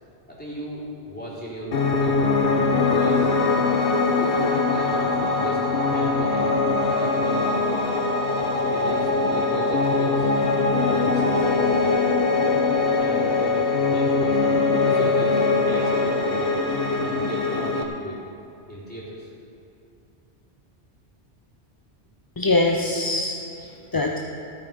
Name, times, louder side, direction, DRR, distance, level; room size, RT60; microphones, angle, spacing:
voice 1, 0.3-2.3 2.9-3.3 4.1-6.5 6.9-7.9 8.5-10.3 10.9-12.0 13.0-14.4 14.8-16.8 17.0-18.2 18.7-19.3, equal, 10° left, -8 dB, 3.9 m, -37 dB
Piano, 1.7-17.8, left 3 dB, 60° left, 1.2 m, -22 dB
voice 2, 22.4-24.2, left 2 dB, 25° left, 1 dB, 0.5 m, -23 dB
16.0 x 8.9 x 5.3 m, 2.6 s
omnidirectional pair, 1.1 m